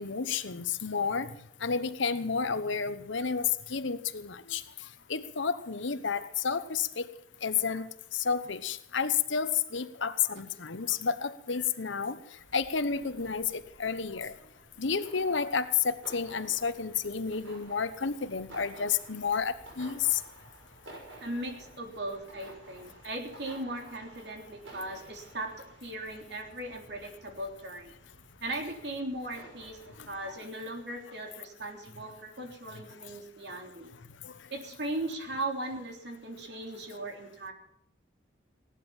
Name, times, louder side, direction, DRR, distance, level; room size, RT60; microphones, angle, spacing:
voice 1, 0.0-1.3 1.6-7.1 7.4-14.3 14.8-20.2 30.0-30.4 34.2-34.3, left 6 dB, 75° left, 13 dB, 1.0 m, -31 dB
sound 1, 12.3-30.3, right 2 dB, 80° right, 6.2 m, -53 dB
voice 2, 21.2-27.9 28.4-29.8 30.1-33.9 34.5-37.5, right 1 dB, 60° right, 3 dB, 3.4 m, -38 dB
17.0 x 11.5 x 7.2 m, 0.74 s
head